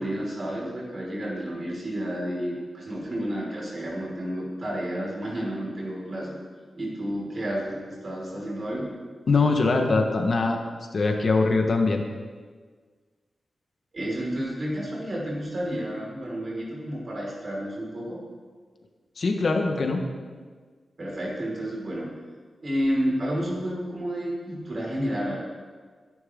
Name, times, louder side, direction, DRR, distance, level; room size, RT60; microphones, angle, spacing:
voice 1, 0.0-6.4 6.8-7.7 8.0-8.9 13.9-18.3 21.0-22.1 22.6-25.4, equal, 40° right, -4 dB, 5.2 m, -30 dB
voice 2, 9.3-10.6 10.9-12.0 19.2-20.0, left 3 dB, 50° left, 3 dB, 1.5 m, -22 dB
22.0 x 11.0 x 3.8 m, 1.5 s
wide cardioid pair, 140°, 0 cm